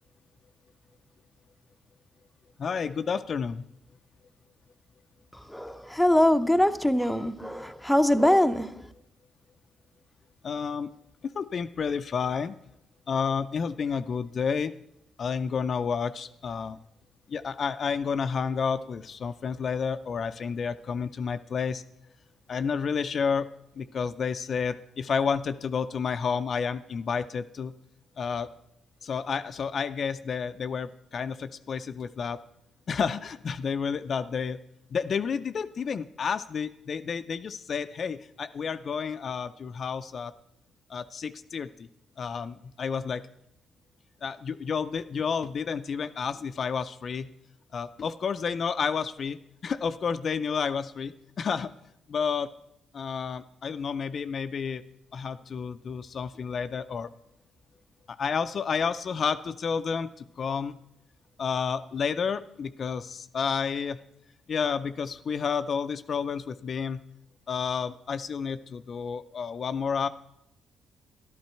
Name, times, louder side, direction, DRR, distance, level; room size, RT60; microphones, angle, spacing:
voice 1, 2.6-3.6 10.4-10.9 11.3-12.5 13.1-14.7 15.2-16.8 17.3-21.8 22.5-23.5 23.8-27.7 28.2-28.5 29.0-32.4 32.9-34.6 34.9-40.3 40.9-41.9 42.2-43.2 44.2-47.3 47.7-49.4 49.6-51.7 52.1-52.5 52.9-54.8 55.1-57.1 58.1-60.8 61.4-64.0 64.5-67.0 67.5-70.1, left 6 dB, 50° left, 0.4 m, -30 dB
voice 2, 5.5-8.8, left 1 dB, ahead, 0.7 m, -23 dB
12.0 x 11.5 x 4.4 m
cardioid pair, 90°, 0 cm